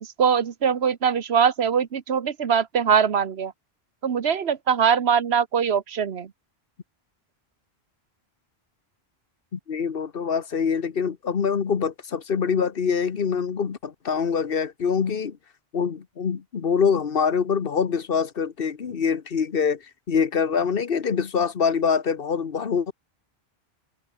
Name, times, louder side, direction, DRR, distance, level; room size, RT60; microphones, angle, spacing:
voice 1, 0.0-3.5 4.0-6.3, right 7 dB, 80° right, 1.3 m, -22 dB
voice 2, 9.5-15.4 15.7-22.9, left 6 dB, 60° left, 1.3 m, -24 dB
omnidirectional pair, 1.1 m